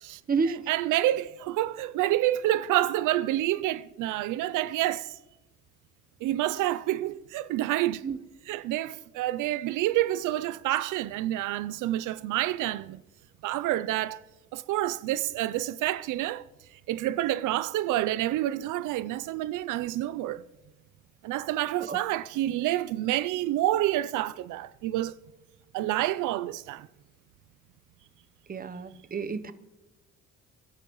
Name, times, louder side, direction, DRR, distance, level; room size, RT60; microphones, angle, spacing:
voice 1, 0.0-5.2 6.2-8.0 8.5-13.0 13.4-14.2 14.5-16.4 16.9-20.4 21.2-25.1 25.7-26.9, right 14 dB, 85° right, 0.5 m, -28 dB
voice 2, 28.5-29.5, right 5 dB, 30° right, 0.9 m, -29 dB
28.5 x 11.5 x 3.1 m
cardioid pair, 90°, 30 cm